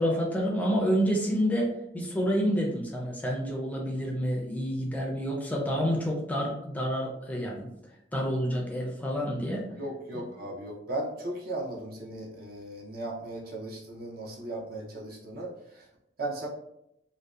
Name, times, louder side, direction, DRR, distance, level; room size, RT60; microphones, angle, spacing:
voice 1, 0.0-7.7 8.1-9.7, equal, 10° left, -1 dB, 0.4 m, -28 dB
voice 2, 9.7-15.9 16.2-16.5, right 1 dB, 60° right, -2 dB, 0.6 m, -37 dB
2.6 x 2.1 x 2.3 m, 0.79 s
head